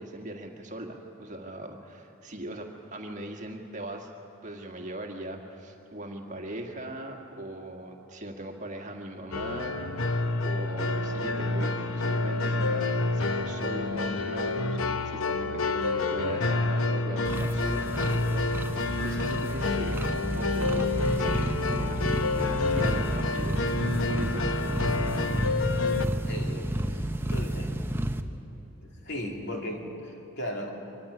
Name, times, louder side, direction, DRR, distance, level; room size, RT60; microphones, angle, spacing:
voice 1, 0.0-4.1 4.4-20.9 21.2-24.5, right 1 dB, 35° right, 2 dB, 1.8 m, -39 dB
sound 1, 9.3-26.1, left 3 dB, 85° left, 0.9 m, -28 dB
sound 2, 17.2-28.2, right 1 dB, 10° right, 0.7 m, -31 dB
voice 2, 26.3-27.7 28.8-30.7, equal, 55° left, 0 dB, 2.8 m, -37 dB
24.5 x 14.5 x 9.9 m, 2.9 s
head